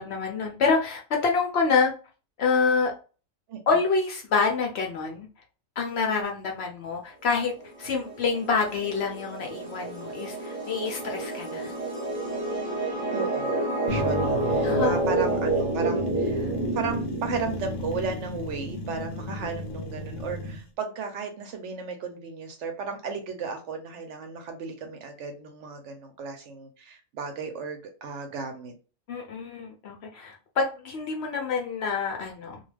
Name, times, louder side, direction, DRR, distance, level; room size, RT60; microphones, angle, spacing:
voice 1, 0.0-1.9 2.4-2.9 3.7-5.3 5.8-7.5 7.8-11.7 14.6-15.0 29.1-32.6, left 4 dB, 60° left, 0.7 m, -27 dB
sound 1, 7.6-18.1, right 2 dB, 30° right, 0.9 m, -29 dB
voice 2, 13.1-28.7, right 5 dB, 70° right, 0.8 m, -35 dB
sound 2, 13.9-20.6, left 2 dB, 85° left, 1.1 m, -34 dB
2.4 x 2.3 x 3.2 m
omnidirectional pair, 1.4 m